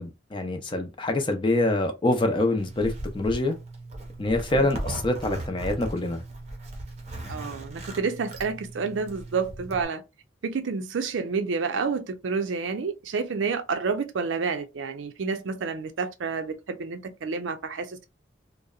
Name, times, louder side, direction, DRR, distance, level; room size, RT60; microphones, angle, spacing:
voice 1, 0.0-3.5 4.2-6.2, left 2 dB, 25° left, 0.5 m, -25 dB
Zipper (clothing), 2.6-9.8, right 1 dB, 35° right, 0.6 m, -38 dB
voice 2, 7.3-10.0 10.4-18.1, right 5 dB, 85° right, 0.5 m, -29 dB
2.7 x 2.0 x 2.3 m
head